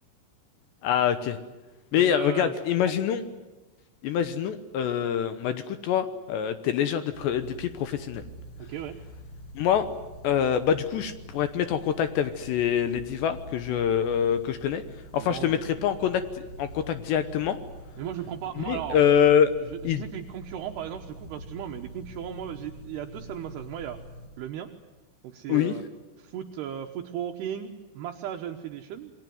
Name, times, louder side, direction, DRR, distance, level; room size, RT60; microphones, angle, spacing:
voice 1, 0.8-1.4 1.9-3.2 4.0-8.2 9.6-9.9 10.2-14.8 15.1-17.6 18.6-19.5 19.8-20.0 25.5-25.8, left 9 dB, 75° left, 10 dB, 2.8 m, -25 dB
voice 2, 1.9-2.6 2.9-3.0 8.6-9.0 15.1-15.7 18.0-19.0 19.7-24.0 24.4-24.7 25.2-25.8 26.2-29.1, right 10 dB, 70° right, 3 dB, 2.7 m, -36 dB
sound 1, 7.1-24.3, equal, 40° left, 8.3 m, -45 dB
28.5 x 22.0 x 9.4 m, 1.1 s
omnidirectional pair, 5.9 m